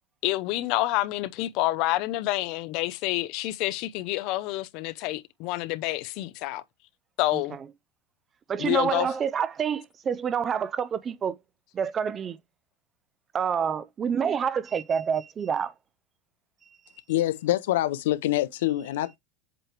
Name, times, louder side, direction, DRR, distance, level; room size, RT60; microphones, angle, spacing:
voice 1, 0.2-6.6 7.2-7.6 8.6-9.1, left 17 dB, 45° left, 0.6 m, -28 dB
voice 2, 8.5-11.4 11.7-12.4 13.3-15.7, right 7 dB, 20° right, 0.3 m, -27 dB
voice 3, 17.1-19.2, left 15 dB, 85° left, 0.8 m, -25 dB
7.7 x 3.2 x 4.5 m
supercardioid pair, 165°, 0 cm